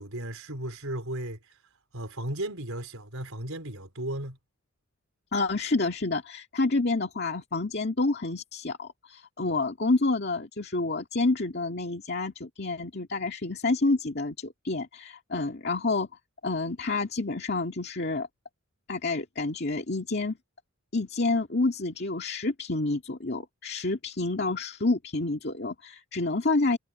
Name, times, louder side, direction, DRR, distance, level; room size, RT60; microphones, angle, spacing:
voice 1, 0.0-1.6 1.9-4.4, right 1 dB, 70° right, 4.3 m, -35 dB
voice 2, 5.3-16.1 16.4-18.3 18.9-20.4 20.9-26.8, left 3 dB, 45° left, 2.2 m, -28 dB
head